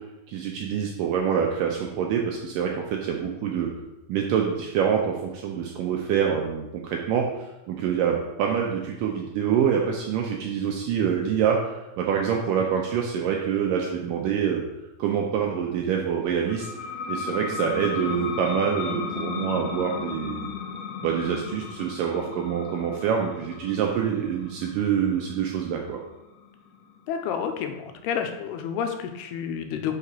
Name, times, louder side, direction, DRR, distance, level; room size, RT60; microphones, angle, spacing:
voice 1, 0.3-3.7 4.1-7.3 7.7-14.6 15.0-16.7 17.1-20.5 21.0-26.0, right 8 dB, 85° right, 1 dB, 2.0 m, -26 dB
sound 1, 16.5-27.7, left 6 dB, 70° left, 2.4 m, -36 dB
voice 2, 27.1-30.0, left 7 dB, 85° left, 5 dB, 2.6 m, -30 dB
5.7 x 4.9 x 5.5 m, 0.95 s
omnidirectional pair, 4.5 m